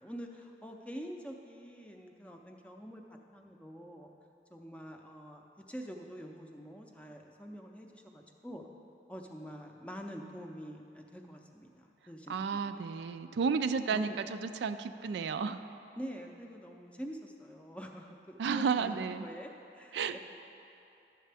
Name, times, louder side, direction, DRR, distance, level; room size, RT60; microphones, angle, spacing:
voice 1, 0.0-4.1 4.5-8.7 9.1-12.9 13.4-14.2 16.0-20.3, equal, 5° left, 2 dB, 0.5 m, -46 dB
voice 2, 12.3-15.6 18.4-19.3 19.9-20.3, right 5 dB, 80° right, 10 dB, 0.3 m, -32 dB
12.0 x 7.4 x 3.4 m, 2.8 s
head